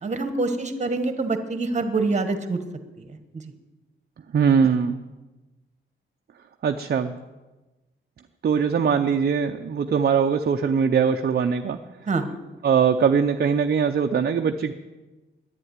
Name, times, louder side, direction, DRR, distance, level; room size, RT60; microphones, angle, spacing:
voice 1, 0.0-2.6 3.0-3.1 12.1-12.2, right 3 dB, 35° right, 9 dB, 1.3 m, -25 dB
voice 2, 4.3-5.0 6.6-7.1 8.4-11.8 12.6-14.7, right 6 dB, 50° right, 5 dB, 0.6 m, -21 dB
11.0 x 9.6 x 9.5 m, 1.1 s
wide cardioid pair, 165°, 21 cm